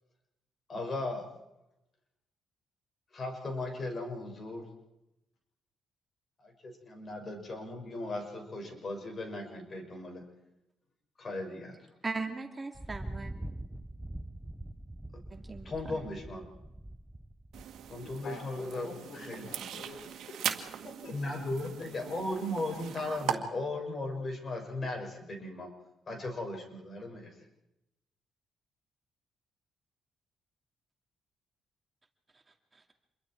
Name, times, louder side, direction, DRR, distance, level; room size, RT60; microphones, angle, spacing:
voice 1, 0.7-1.3 3.1-4.7 6.4-10.2 11.2-11.8 15.6-16.5 17.9-18.9 19.1-19.4 21.1-25.7 26.1-27.3, left 2 dB, 40° left, 3 dB, 6.2 m, -37 dB
voice 2, 12.0-13.3 15.3-16.0 32.7-32.8, right 3 dB, 25° right, 4 dB, 2.5 m, -38 dB
Thunder, 12.8-18.2, right 1 dB, 10° right, 0.7 m, -43 dB
sound 1, 17.5-23.3, right 10 dB, 75° right, 1.9 m, -39 dB
voice 3, 18.0-21.4, left 3 dB, 70° left, 3 dB, 5.6 m, -48 dB
27.5 x 22.5 x 4.7 m, 0.89 s
cardioid pair, 90°, 0 cm